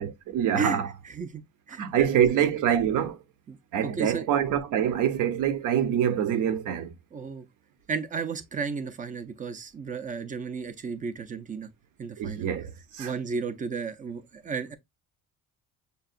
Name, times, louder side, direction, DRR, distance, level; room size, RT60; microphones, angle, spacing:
voice 1, 0.0-0.9 1.8-3.2 3.7-6.9 12.2-13.1, right 9 dB, 65° right, 0.8 m, -25 dB
voice 2, 0.5-1.4 1.7-2.6 3.5-3.6 3.8-4.2 7.1-7.4 7.9-11.7 12.0-12.5 13.0-14.7, right 5 dB, 25° right, 0.5 m, -33 dB
6.6 x 2.3 x 2.4 m
cardioid pair, 150°, 34 cm